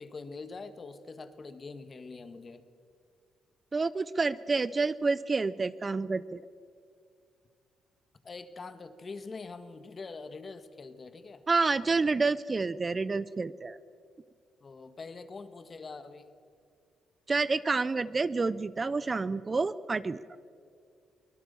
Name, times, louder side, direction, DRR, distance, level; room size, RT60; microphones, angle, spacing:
voice 1, 0.0-2.6 8.2-11.4 14.6-16.3, left 4 dB, 35° left, 11 dB, 1.6 m, -44 dB
voice 2, 3.7-6.4 11.5-13.8 17.3-20.2, right 4 dB, 30° right, 16 dB, 0.5 m, -28 dB
24.5 x 19.5 x 7.0 m, 2.3 s
cardioid pair, 90°, 0 cm